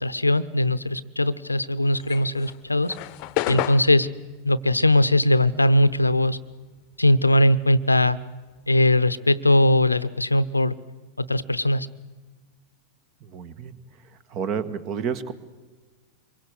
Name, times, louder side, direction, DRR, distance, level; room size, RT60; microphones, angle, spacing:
voice 1, 0.0-3.0 3.5-4.1 4.4-6.4 7.0-8.2 8.7-10.7 11.2-11.9, left 1 dB, 85° left, 17 dB, 0.7 m, -20 dB
sound 1, 1.9-6.7 6.9-8.9, left 16 dB, 45° left, 0.8 m, -32 dB
voice 2, 13.2-13.8 14.3-15.3, right 7 dB, 40° right, 16 dB, 1.6 m, -30 dB
26.0 x 23.0 x 8.1 m, 1.3 s
figure-of-eight pair, 90°, 0 cm